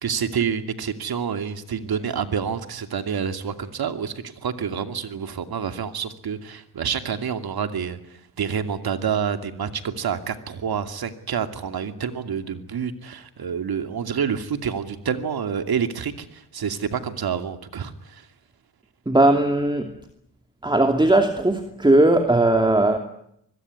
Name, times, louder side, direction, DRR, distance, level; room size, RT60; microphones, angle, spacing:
voice 1, 0.0-18.3, right 7 dB, 60° right, 2.7 m, -28 dB
voice 2, 19.1-19.9 20.6-23.0, right 2 dB, 10° right, 2.7 m, -18 dB
24.5 x 21.0 x 9.7 m
cardioid pair, 70°, 41 cm